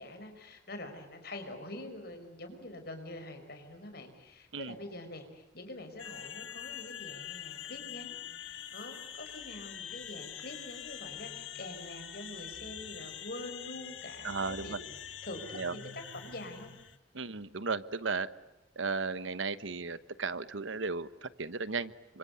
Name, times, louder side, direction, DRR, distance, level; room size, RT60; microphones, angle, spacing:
voice 1, 0.0-16.7, left 1 dB, 55° left, 6 dB, 5.5 m, -45 dB
sound 1, 6.0-17.0, left 10 dB, 85° left, 1.9 m, -44 dB
voice 2, 14.2-14.8 15.5-15.7 17.1-18.3 18.8-22.2, right 4 dB, 85° right, 14 dB, 1.2 m, -35 dB
28.0 x 25.5 x 8.2 m, 0.93 s
head